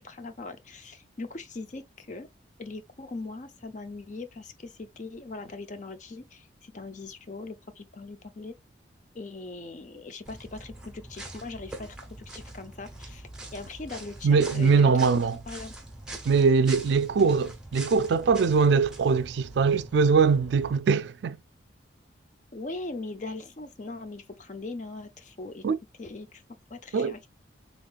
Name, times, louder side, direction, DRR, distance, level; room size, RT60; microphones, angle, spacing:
voice 1, 0.0-2.3 2.6-8.5 9.1-15.7 17.1-17.2 22.5-25.6 26.0-26.4 26.7-27.3, left 3 dB, 40° left, 0.5 m, -40 dB
sound 1, 10.3-20.8, right 2 dB, 5° right, 0.9 m, -44 dB
voice 2, 14.2-15.4 16.3-21.4 25.6-25.8 26.9-27.1, right 5 dB, 65° right, 0.3 m, -22 dB
3.8 x 3.5 x 2.3 m
head